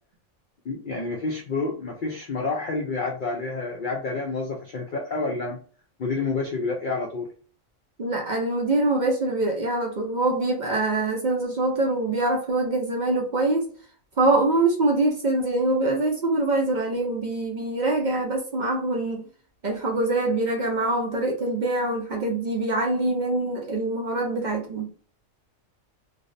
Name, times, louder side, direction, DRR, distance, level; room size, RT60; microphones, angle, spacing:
voice 1, 0.6-5.6 6.0-7.3, left 3 dB, 70° left, -1 dB, 0.4 m, -29 dB
voice 2, 8.0-13.7 14.2-19.3 19.6-24.9, right 2 dB, 60° right, 0 dB, 0.4 m, -24 dB
2.4 x 2.0 x 2.5 m, 0.43 s
omnidirectional pair, 1.4 m